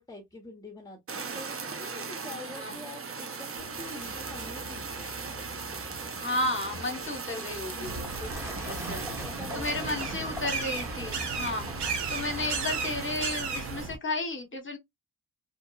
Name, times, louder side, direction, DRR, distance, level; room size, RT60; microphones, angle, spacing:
voice 1, 0.0-5.1 7.7-8.2 9.2-10.0, left 2 dB, 10° left, 0.9 m, -45 dB
Fire, 1.1-13.9, right 5 dB, 35° right, 0.6 m, -39 dB
Truck, 3.6-13.8, left 1 dB, 5° right, 1.1 m, -44 dB
voice 2, 6.2-9.0 9.5-14.8, left 2 dB, 30° left, 1.2 m, -33 dB
sound 1, 7.8-14.0, right 4 dB, 80° right, 1.0 m, -35 dB
2.9 x 2.3 x 2.3 m
cardioid pair, 75°, 40 cm